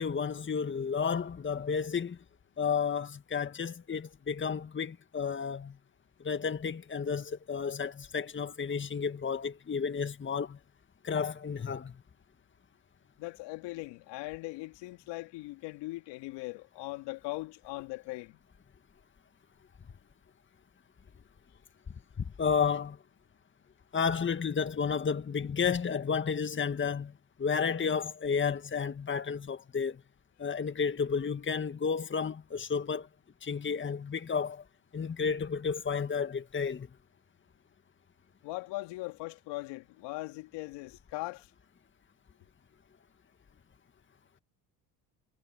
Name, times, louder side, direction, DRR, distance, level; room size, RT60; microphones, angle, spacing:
voice 1, 0.0-2.2 2.6-5.8 6.2-10.6 11.0-12.0 22.2-23.0 23.9-27.1 27.4-30.0 30.4-33.1 33.4-34.6 34.9-36.9, left 6 dB, 25° left, 1.9 m, -32 dB
voice 2, 13.2-18.4 38.4-41.5, left 21 dB, 70° left, 2.5 m, -40 dB
hypercardioid pair, 70°, 43 cm